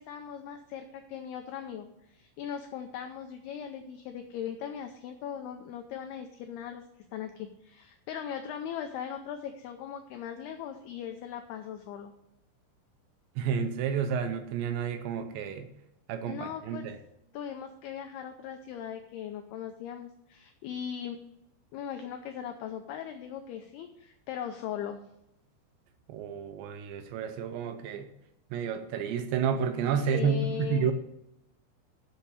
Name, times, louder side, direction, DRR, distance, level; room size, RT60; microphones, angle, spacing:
voice 1, 0.0-6.8 7.1-12.1 16.3-16.9 17.3-21.2 21.7-25.0 29.8-30.9, left 8 dB, 85° left, 6 dB, 2.3 m, -39 dB
voice 2, 13.4-15.7 16.1-16.9 26.1-28.1 28.5-30.9, right 7 dB, 80° right, 8 dB, 2.9 m, -30 dB
7.4 x 7.2 x 8.1 m, 0.81 s
omnidirectional pair, 5.4 m